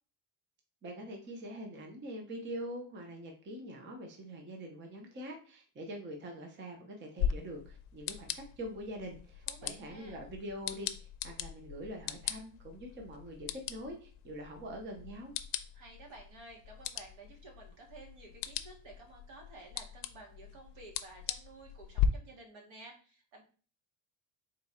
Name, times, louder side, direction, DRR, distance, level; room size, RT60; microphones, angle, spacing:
voice 1, 0.8-15.3, equal, 25° right, 2 dB, 0.5 m, -44 dB
sound 1, 7.2-22.1, left 10 dB, 80° left, 0.6 m, -39 dB
voice 2, 9.5-10.2 15.7-23.4, right 2 dB, 65° right, 1 dB, 1.4 m, -53 dB
3.8 x 2.4 x 4.1 m, 0.39 s
cardioid pair, 160°, 50 cm